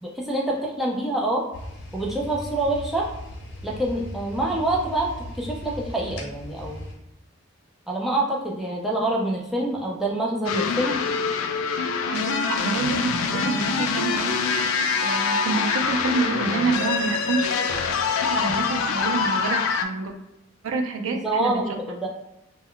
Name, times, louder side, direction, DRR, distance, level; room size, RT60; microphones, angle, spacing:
voice 1, 0.0-1.4 1.9-3.0 3.6-5.1 5.4-6.8 7.9-10.9 21.1-22.1, right 2 dB, ahead, -3 dB, 0.4 m, -26 dB
sound 1, 1.5-6.9, left 1 dB, 70° left, 0.8 m, -38 dB
sound 2, 10.5-19.9, left 5 dB, 85° left, 0.3 m, -25 dB
voice 2, 12.1-14.4 15.0-17.5 18.3-20.1 20.6-21.8, right 4 dB, 80° right, 4 dB, 0.4 m, -28 dB
2.1 x 2.1 x 3.7 m, 0.87 s
head